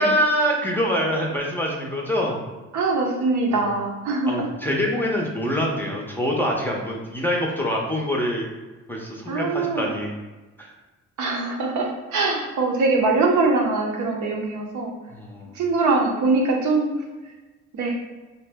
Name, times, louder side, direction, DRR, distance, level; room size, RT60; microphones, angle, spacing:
voice 1, 0.0-2.4 3.5-3.6 4.3-8.5 8.9-10.1 10.6-10.7 15.1-15.6, equal, 5° left, -1 dB, 0.5 m, -25 dB
voice 2, 2.7-4.4 9.3-9.9 11.2-14.9 15.5-16.9 17.7-18.0, right 3 dB, 75° right, 1 dB, 0.6 m, -22 dB
2.6 x 2.0 x 3.4 m, 1.2 s
cardioid pair, 90°, 30 cm